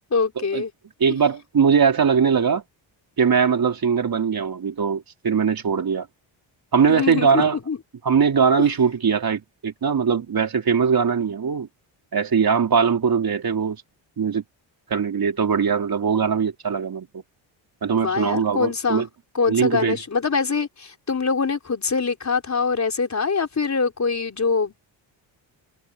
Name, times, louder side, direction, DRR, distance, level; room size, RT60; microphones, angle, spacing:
voice 1, 0.1-0.7 6.9-7.8 17.9-19.1 19.3-24.8, left 5 dB, 35° left, 4.5 m, -24 dB
voice 2, 1.0-2.6 3.2-6.1 6.7-7.6 8.0-11.7 12.1-13.8 14.2-14.4 14.9-17.2 17.8-19.1 19.5-20.0, right 6 dB, 50° right, 3.9 m, -21 dB
cardioid pair, 90°, 46 cm